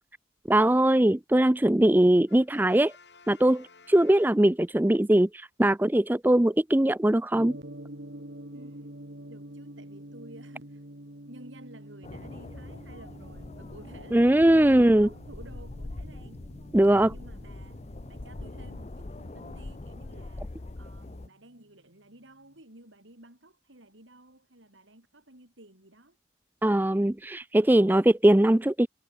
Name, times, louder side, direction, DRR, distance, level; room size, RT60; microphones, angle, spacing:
voice 1, 0.5-2.9 3.3-7.6 14.1-15.1 16.7-17.1 26.6-28.9, right 1 dB, 10° right, 0.4 m, -21 dB
Brass instrument, 2.3-4.9, left 4 dB, 65° left, 3.9 m, -55 dB
Gong, 7.3-21.5, right 1 dB, 65° right, 3.4 m, -47 dB
voice 2, 8.5-8.9 9.3-10.8 11.3-16.4 16.8-17.8 18.1-26.2, right 1 dB, 85° right, 7.3 m, -52 dB
sound 1, 12.0-21.3, left 2 dB, 35° left, 0.6 m, -42 dB
head